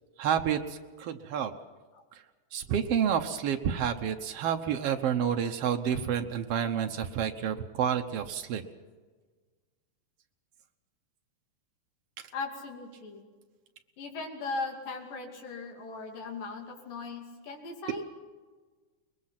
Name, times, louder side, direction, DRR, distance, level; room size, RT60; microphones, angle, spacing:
voice 1, 0.2-1.5 2.5-8.6, right 8 dB, 75° right, 6 dB, 1.4 m, -29 dB
voice 2, 12.3-13.3 14.0-18.0, left 3 dB, 75° left, 2 dB, 4.3 m, -38 dB
23.0 x 21.0 x 5.9 m, 1.4 s
omnidirectional pair, 3.9 m